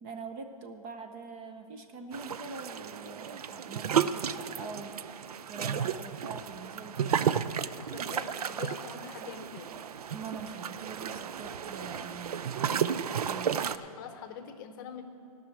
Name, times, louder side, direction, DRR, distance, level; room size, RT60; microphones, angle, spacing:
voice 1, 0.0-5.0 5.5-7.5 10.1-13.5, right 4 dB, 25° right, 6 dB, 0.7 m, -43 dB
sound 1, 2.1-13.8, right 8 dB, 90° right, 0.5 m, -33 dB
voice 2, 7.9-9.7 13.5-15.0, left 7 dB, 35° left, 8 dB, 0.8 m, -44 dB
13.5 x 6.3 x 8.5 m, 2.6 s
hypercardioid pair, 150°, 19 cm